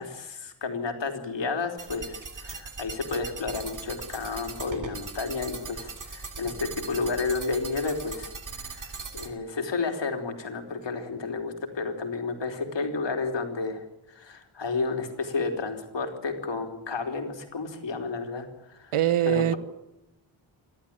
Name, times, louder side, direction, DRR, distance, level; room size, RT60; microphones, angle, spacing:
voice 1, 0.0-8.3 8.7-18.9 19.3-19.6, left 4 dB, 60° left, 3.5 m, -31 dB
sound 1, 1.8-9.3, right 4 dB, 40° right, 2.5 m, -39 dB
voice 2, 18.9-19.5, right 11 dB, 90° right, 1.1 m, -22 dB
28.5 x 12.5 x 8.8 m
wide cardioid pair, 160°, 49 cm